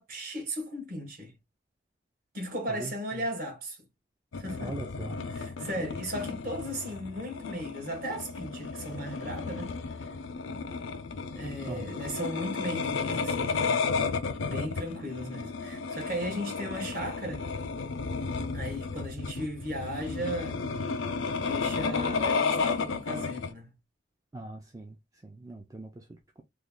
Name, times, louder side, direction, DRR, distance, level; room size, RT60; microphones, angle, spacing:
voice 1, 0.0-1.3 2.3-3.8 4.3-4.7 5.3-9.8 11.3-13.8 14.4-17.4 18.5-20.6 21.3-23.7, equal, 45° right, 1.3 m, -36 dB
voice 2, 2.7-3.3 4.6-5.2 5.6-5.7 11.7-12.0 24.3-26.4, right 2 dB, 15° right, 0.3 m, -42 dB
sound 1, 4.3-23.5, left 4 dB, 90° left, 0.5 m, -33 dB
3.1 x 2.3 x 3.6 m
head